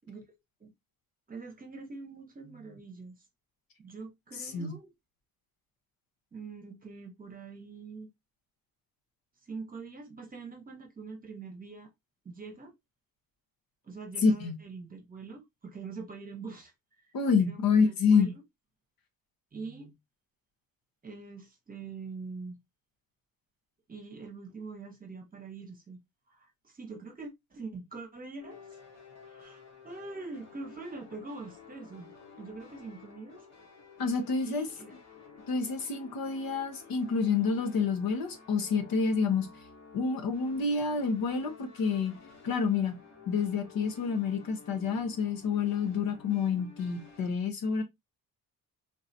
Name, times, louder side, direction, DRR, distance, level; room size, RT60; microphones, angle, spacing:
voice 1, 1.3-3.1 3.8-4.9 6.3-8.1 9.4-11.9 12.2-12.7 13.8-18.4 19.5-19.9 21.0-22.6 23.9-26.0 26.3-28.8 29.2-33.5 34.4-35.0, right 4 dB, 25° right, 1.0 m, -44 dB
voice 2, 14.2-14.6 17.1-18.3 34.0-34.7 35.5-39.5 39.9-42.1 42.4-43.0 43.3-47.8, left 5 dB, 75° left, 1.1 m, -28 dB
sound 1, 28.4-47.3, left 5 dB, 45° left, 1.2 m, -52 dB
3.8 x 2.7 x 2.7 m
cardioid pair, 160°, 36 cm